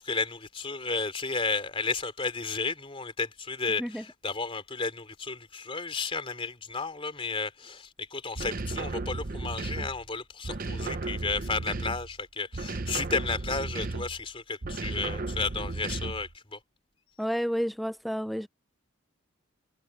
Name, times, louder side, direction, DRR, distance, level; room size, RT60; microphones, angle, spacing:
voice 1, 0.0-16.6, left 4 dB, 25° left, 3.1 m, -33 dB
sound 1, 8.4-10.1 10.4-12.2 12.5-14.2 14.6-16.3, right 2 dB, 40° right, 0.8 m, -34 dB
voice 2, 17.2-18.5, equal, ahead, 0.4 m, -30 dB
head